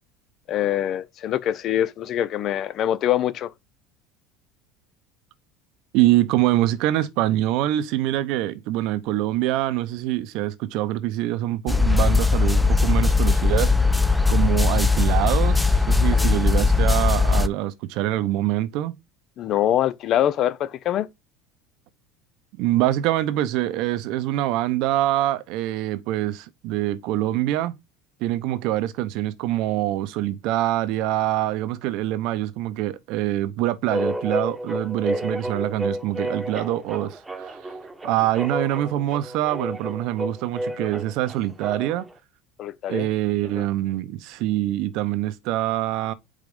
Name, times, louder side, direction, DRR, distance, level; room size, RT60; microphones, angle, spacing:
voice 1, 0.5-3.5 16.1-16.4 19.4-21.1 42.6-43.1 43.6-43.7, left 11 dB, 50° left, 0.6 m, -24 dB
voice 2, 5.9-13.7 14.1-19.0 22.6-27.7 28.2-37.6 38.0-42.1 42.9-46.1, right 14 dB, 65° right, 0.7 m, -25 dB
sound 1, 11.7-17.5, left 4 dB, 5° left, 0.4 m, -19 dB
sound 2, 33.9-42.1, right 1 dB, 15° right, 1.1 m, -31 dB
5.0 x 3.8 x 5.3 m
supercardioid pair, 100°, 0 cm